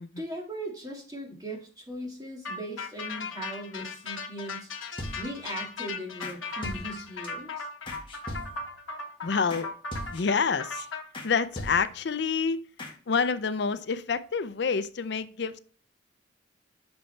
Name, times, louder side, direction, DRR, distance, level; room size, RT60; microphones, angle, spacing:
voice 1, 0.0-4.7 5.2-7.7, right 1 dB, 20° right, 1.8 m, -39 dB
sound 1, 2.4-11.0, left 4 dB, 85° left, 1.0 m, -37 dB
sound 2, 5.0-5.5 6.2-6.4 6.6-7.3 7.9-8.8 9.5-9.6 9.9-10.4 10.7-10.8 11.1-11.3 11.5-12.1 12.8-12.9, left 1 dB, 25° left, 1.5 m, -39 dB
voice 2, 9.2-9.7 10.1-10.9 11.2-12.6 13.1-15.6, left 5 dB, 60° left, 0.5 m, -27 dB
6.9 x 5.7 x 3.2 m
head